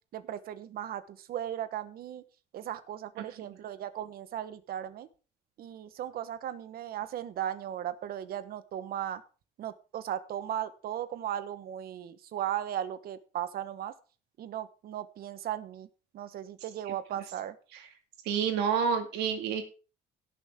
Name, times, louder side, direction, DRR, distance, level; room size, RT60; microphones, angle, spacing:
voice 1, 0.1-2.2 2.5-5.1 5.6-9.2 9.6-13.9 14.4-15.9 16.1-17.6, right 11 dB, 60° right, 12 dB, 1.2 m, -37 dB
voice 2, 18.2-19.6, right 7 dB, 90° right, 5 dB, 2.3 m, -29 dB
17.0 x 6.8 x 3.7 m, 0.35 s
cardioid pair, 110°, 17 cm